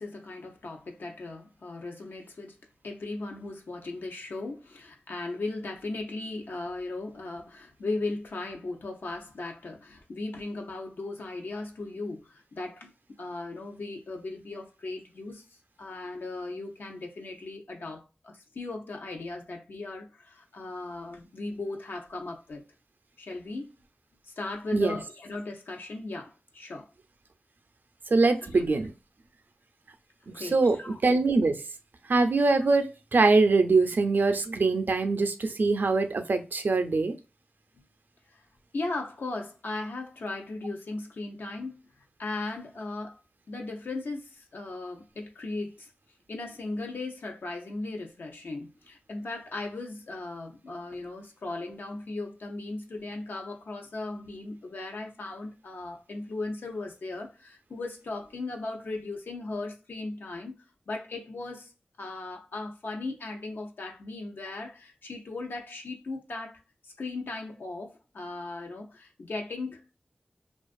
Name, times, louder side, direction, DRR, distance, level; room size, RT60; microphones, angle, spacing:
voice 1, 0.0-2.6 2.8-12.9 13.2-15.4 15.8-22.6 23.2-23.7 24.2-26.9 28.5-28.6 30.3-31.0 32.4-32.5 37.8-37.9 38.7-41.8 42.2-43.2 43.5-45.9 46.3-60.5 60.9-61.7 62.0-69.9, left 2 dB, 85° left, 0.6 m, -37 dB
voice 2, 28.1-28.9 30.4-30.8 31.0-31.5 32.1-37.1, right 3 dB, 70° right, 0.4 m, -23 dB
2.5 x 2.3 x 2.3 m
cardioid pair, 45°, 3 cm